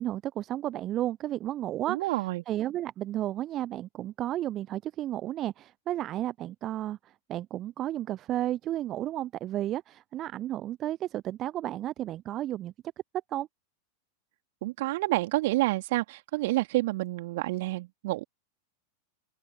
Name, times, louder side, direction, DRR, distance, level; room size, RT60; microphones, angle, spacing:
voice 1, 0.0-12.7 13.3-13.5, right 13 dB, 30° right, 0.9 m, -33 dB
voice 2, 1.9-2.4 14.6-18.2, right 19 dB, 50° right, 2.9 m, -28 dB
open air
figure-of-eight pair, 90°, 0 cm